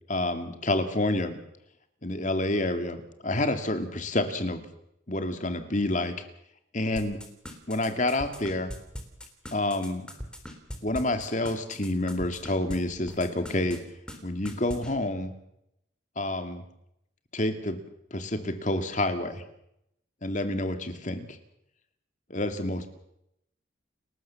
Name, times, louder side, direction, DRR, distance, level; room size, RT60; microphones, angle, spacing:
voice 1, 0.1-1.4 2.0-3.0 3.2-4.6 5.1-6.1 6.7-7.2 7.7-8.7 9.5-10.1 10.8-13.8 14.2-15.3 16.2-16.6 17.3-17.8 18.1-19.4 20.2-21.4 22.3-22.9, left 1 dB, 35° left, 8 dB, 2.3 m, -28 dB
sound 1, 7.0-12.8 13.1-13.8 14.1-14.2 14.4-14.9, equal, 5° left, 3.3 m, -39 dB
30.0 x 14.0 x 7.1 m, 0.79 s
head